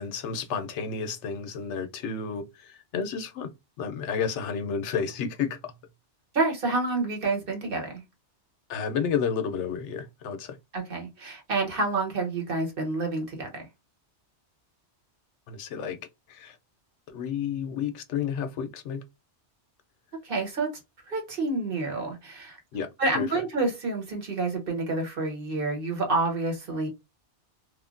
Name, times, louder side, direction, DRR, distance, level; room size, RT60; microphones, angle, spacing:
voice 1, 0.0-3.5 3.8-5.7 8.7-10.6 15.5-16.0 16.3-16.6 17.1-19.0 22.7-22.9 23.2-23.3, left 6 dB, 85° left, 0.9 m, -31 dB
voice 2, 6.3-8.0 10.7-13.7 20.2-20.7 21.1-22.6 23.0-26.9, right 3 dB, 55° right, 1.2 m, -28 dB
3.1 x 2.1 x 2.4 m
omnidirectional pair, 1.2 m